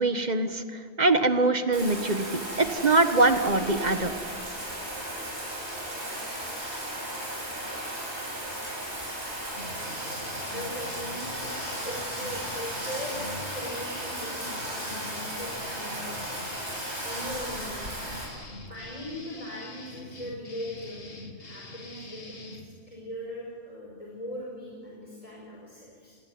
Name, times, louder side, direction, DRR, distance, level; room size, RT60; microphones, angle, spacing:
voice 1, 0.0-4.1, right 2 dB, 40° right, 9 dB, 1.7 m, -23 dB
Bathtub (filling or washing), 1.7-18.3, right 1 dB, 80° right, 7.1 m, -35 dB
sound 1, 9.5-22.7, left 2 dB, 85° left, 2.8 m, -44 dB
voice 2, 10.5-16.4 17.0-18.2 18.7-22.6 22.9-26.2, equal, 30° left, -3 dB, 5.1 m, -40 dB
28.5 x 21.0 x 9.6 m, 2.1 s
omnidirectional pair, 1.1 m